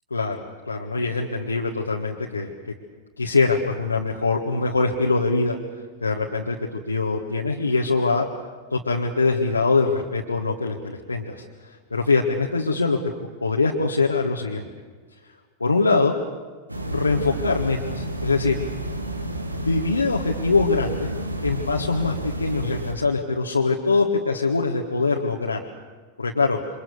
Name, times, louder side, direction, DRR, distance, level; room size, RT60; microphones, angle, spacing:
voice 1, 0.1-2.5 3.2-5.6 6.0-6.6 6.9-8.3 8.7-14.7 15.6-16.1 16.9-18.6 19.6-21.1 21.4-25.6 26.2-26.6, left 3 dB, 80° left, -1 dB, 1.7 m, -23 dB
sound 1, 16.7-22.9, right 1 dB, 85° right, 2.1 m, -31 dB
28.5 x 25.0 x 7.0 m, 1.4 s
figure-of-eight pair, 90°, 0 cm